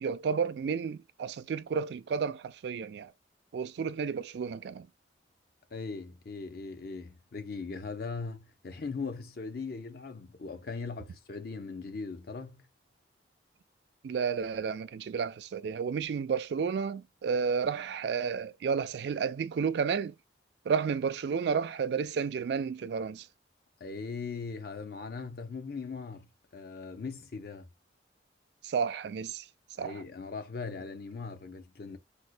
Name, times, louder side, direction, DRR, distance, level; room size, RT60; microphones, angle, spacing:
voice 1, 0.0-3.1 3.5-4.9 14.0-20.1 20.7-23.3 28.6-29.5 29.8-30.0, right 6 dB, 70° right, 0.3 m, -31 dB
voice 2, 5.7-12.6 23.8-26.3 26.5-27.7 29.8-32.0, left 4 dB, 60° left, 0.6 m, -39 dB
4.2 x 2.1 x 2.5 m
head